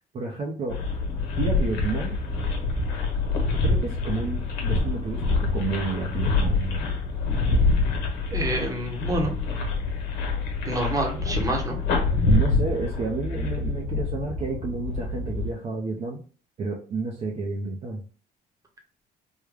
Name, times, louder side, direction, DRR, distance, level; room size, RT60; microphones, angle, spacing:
voice 1, 0.1-0.8 1.4-2.2 3.6-5.2 5.5-6.9 12.3-16.2 16.6-18.0, right 3 dB, 40° right, -1 dB, 0.6 m, -30 dB
sound 1, 0.7-15.5, left 3 dB, 90° left, 1.0 m, -26 dB
voice 2, 8.3-9.3 10.6-11.8, right 2 dB, 20° right, 2 dB, 0.9 m, -27 dB
3.5 x 2.2 x 3.3 m, 0.41 s
cardioid pair, 110°, 17 cm